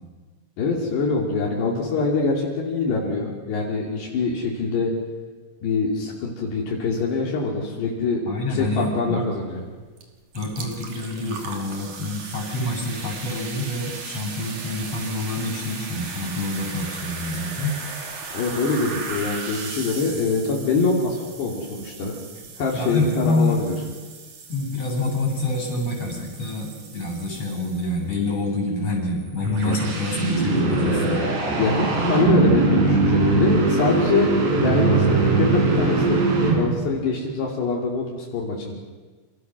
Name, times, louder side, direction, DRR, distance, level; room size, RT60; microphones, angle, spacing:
voice 1, 0.6-4.9 5.6-8.2 8.5-9.6 18.3-22.2 22.6-23.7 29.7-29.8 31.6-34.3 34.6-38.8, left 3 dB, 75° left, -3 dB, 5.0 m, -24 dB
voice 2, 8.3-9.2 10.3-17.8 22.7-23.7 24.5-31.2, left 2 dB, 30° left, 1 dB, 8.6 m, -27 dB
sound 1, 10.0-10.1 10.3-28.1, right 4 dB, 50° right, 3.8 m, -37 dB
sound 2, 29.1-37.0, right 3 dB, 80° right, 7.0 m, -21 dB
28.5 x 27.5 x 6.3 m, 1.4 s
omnidirectional pair, 4.9 m